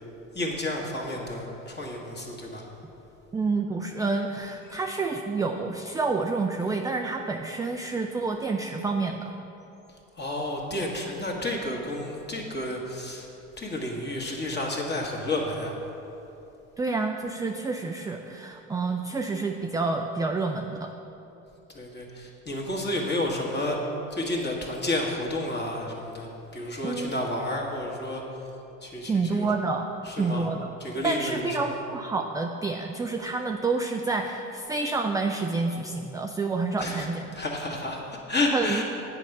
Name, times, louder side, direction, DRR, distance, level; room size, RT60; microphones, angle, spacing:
voice 1, 0.3-2.7 4.7-4.8 10.1-13.3 13.6-15.8 21.7-23.8 24.1-28.2 28.8-29.5 30.0-30.5 30.8-31.8 36.8-37.1 37.3-38.8, left 1 dB, 25° left, -1 dB, 1.8 m, -31 dB
voice 2, 3.3-9.3 16.8-20.9 26.8-27.2 29.0-29.8 30.1-30.7 31.0-37.3 38.5-38.8, right 3 dB, 10° right, 3 dB, 0.3 m, -28 dB
8.2 x 4.8 x 6.6 m, 2.9 s
hypercardioid pair, 70°, 40 cm